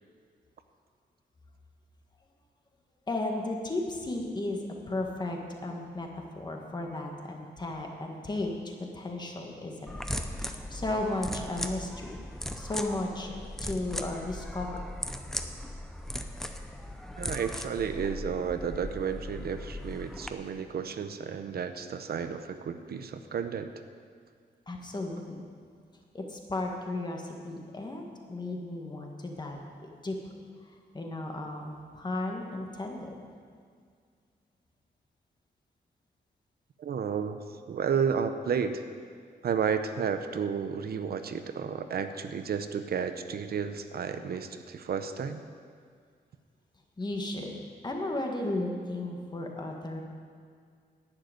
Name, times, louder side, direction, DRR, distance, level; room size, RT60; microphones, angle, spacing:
voice 1, 3.1-10.0 10.4-12.2 12.5-13.3 13.6-14.8 18.0-18.1 24.7-25.4 26.1-30.2 30.9-33.2 47.0-47.5 47.8-50.0, left 2 dB, 25° left, 1 dB, 1.5 m, -35 dB
sound 1, 9.9-20.3, left 1 dB, ahead, 0.6 m, -38 dB
voice 2, 17.2-23.7 36.8-37.4 37.7-38.8 39.4-45.4, right 7 dB, 65° right, 9 dB, 0.7 m, -32 dB
10.5 x 7.8 x 9.4 m, 2.1 s
wide cardioid pair, 170°, 18 cm